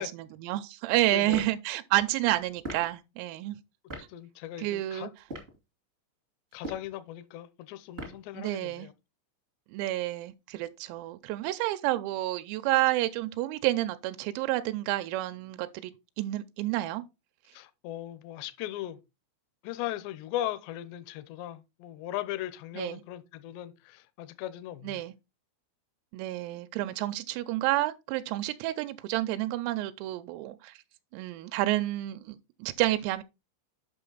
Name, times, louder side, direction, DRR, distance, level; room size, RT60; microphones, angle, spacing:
voice 1, 0.0-3.6 4.0-4.1 4.6-5.1 8.3-8.9 9.7-15.9 16.2-17.0 22.8-23.0 24.8-25.1 26.1-30.8 31.1-33.2, right 16 dB, 90° right, 3.3 m, -30 dB
voice 2, 1.1-1.4 4.1-5.1 6.5-8.9 17.5-19.0 19.6-25.0, left 13 dB, 85° left, 2.5 m, -38 dB
sound 1, 1.3-1.6 2.6-2.9 3.9-4.1 5.2-5.6 6.5-6.9 7.9-8.3, right 1 dB, 65° right, 0.6 m, -39 dB
8.8 x 5.8 x 3.9 m
omnidirectional pair, 6.0 m